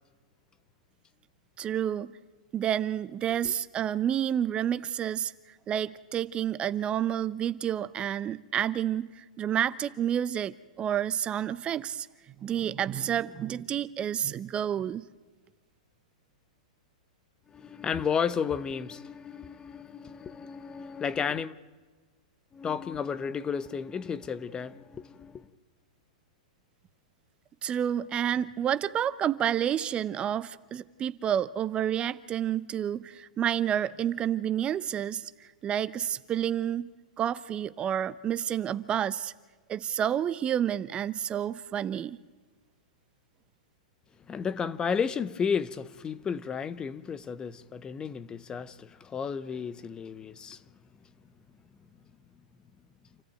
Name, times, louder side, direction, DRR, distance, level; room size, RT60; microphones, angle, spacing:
voice 1, 1.6-2.1 2.5-5.3 5.7-12.1 12.4-15.1 27.6-36.9 37.2-39.3 39.7-42.2, right 10 dB, 25° right, 0.7 m, -29 dB
voice 2, 17.5-21.5 22.5-25.5 44.3-50.6, left 6 dB, 20° left, 0.9 m, -33 dB
27.5 x 14.5 x 9.1 m
hypercardioid pair, 115°, 4 cm